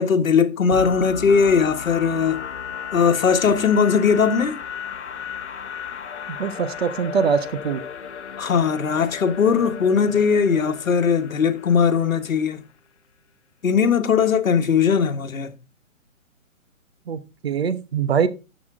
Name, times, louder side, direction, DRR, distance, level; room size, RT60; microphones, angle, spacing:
voice 1, 0.0-2.4 2.9-4.6 8.4-12.6 13.6-15.5, left 6 dB, 75° left, 1.6 m, -19 dB
sound 1, 0.7-12.5, left 7 dB, 55° left, 1.3 m, -35 dB
voice 2, 6.3-7.8 17.1-18.3, right 7 dB, 50° right, 1.2 m, -23 dB
12.0 x 7.4 x 3.7 m
hypercardioid pair, 160°, 41 cm